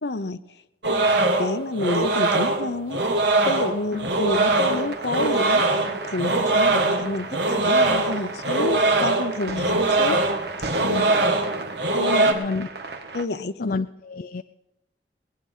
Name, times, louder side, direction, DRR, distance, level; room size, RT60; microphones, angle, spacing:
voice 1, 0.0-0.4 1.4-3.0 3.5-5.6 6.0-10.2 11.9-12.3 13.1-13.7, left 2 dB, 70° left, 13 dB, 0.9 m, -29 dB
sound 1, 0.8-12.3, right 2 dB, 80° right, 1.9 m, -22 dB
sound 2, 3.9-13.2, right 3 dB, 65° right, 1.5 m, -36 dB
voice 2, 10.8-11.2 12.3-12.7 13.6-14.4, left 4 dB, 50° left, 9 dB, 0.4 m, -30 dB
21.0 x 10.0 x 5.6 m, 0.90 s
head